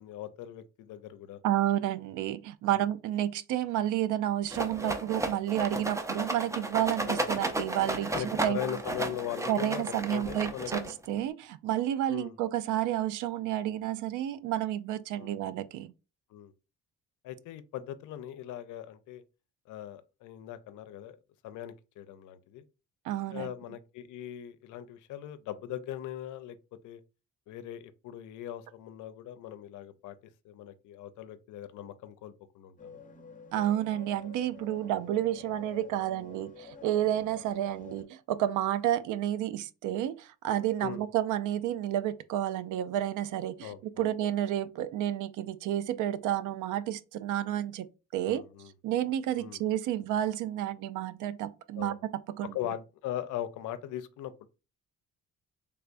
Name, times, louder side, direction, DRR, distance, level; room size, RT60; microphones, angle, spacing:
voice 1, 0.0-1.4 2.7-2.8 7.0-7.5 8.1-9.8 10.1-10.9 12.1-12.3 15.2-15.3 16.3-16.5 17.2-19.2 19.7-21.2 21.4-22.6 23.3-26.6 26.8-27.0 27.5-30.2 30.4-33.0 40.8-41.0 43.6-44.1 48.2-48.7 49.4-49.6 51.8-52.0 52.5-54.5, left 11 dB, 80° left, 0.5 m, -40 dB
voice 2, 1.4-8.1 8.4-8.6 9.5-15.9 23.0-23.5 33.5-48.4 48.8-52.0 52.4-52.6, right 12 dB, 80° right, 0.4 m, -30 dB
Rattle, 4.5-11.2, right 1 dB, 10° right, 0.5 m, -34 dB
sound 1, 32.8-38.0, left 5 dB, 25° left, 0.8 m, -50 dB
3.4 x 3.3 x 2.5 m
cardioid pair, 90°, 30 cm